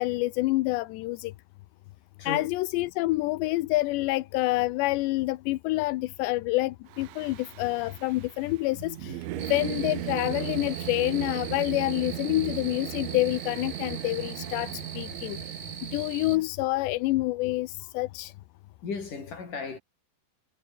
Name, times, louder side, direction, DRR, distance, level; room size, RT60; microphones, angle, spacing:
voice 1, 0.0-1.3 2.3-15.4 15.8-18.3, left 19 dB, 80° left, 2.8 m, -27 dB
Singing / Musical instrument, 6.9-16.5, right 15 dB, 80° right, 3.7 m, -37 dB
sound 1, 9.4-16.4, right 5 dB, 55° right, 1.0 m, -42 dB
voice 2, 18.8-19.8, left 5 dB, 45° left, 7.1 m, -35 dB
omnidirectional pair, 5.5 m